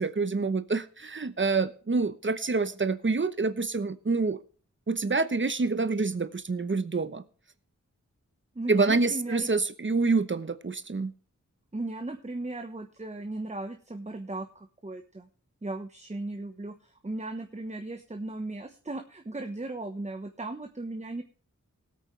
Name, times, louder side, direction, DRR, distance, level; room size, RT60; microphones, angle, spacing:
voice 1, 0.0-4.4 4.9-7.2 8.7-11.1, right 3 dB, 40° right, 13 dB, 1.0 m, -27 dB
voice 2, 8.5-9.5 11.7-15.3 15.6-21.2, right 2 dB, 25° right, 5 dB, 1.2 m, -37 dB
19.0 x 8.6 x 3.3 m, 0.43 s
wide cardioid pair, 70°, 30 cm